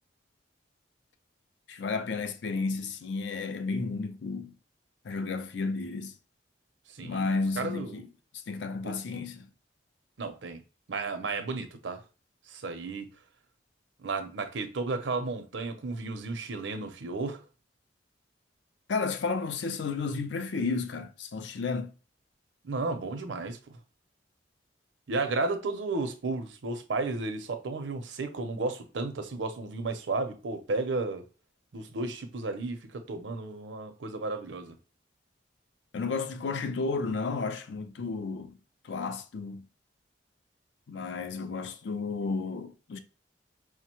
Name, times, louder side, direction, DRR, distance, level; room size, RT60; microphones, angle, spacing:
voice 1, 1.7-4.5 5.0-6.2 7.0-8.1 8.3-9.5 18.9-21.9 35.9-38.6 38.8-39.7 40.9-43.0, left 4 dB, 70° left, 0.5 m, -32 dB
voice 2, 7.6-8.0 8.8-8.9 10.2-10.6 10.9-12.0 12.5-13.1 14.0-17.4 22.6-23.8 25.1-31.2 31.7-34.8, right 3 dB, 80° right, 0.6 m, -33 dB
4.7 x 2.1 x 2.9 m
head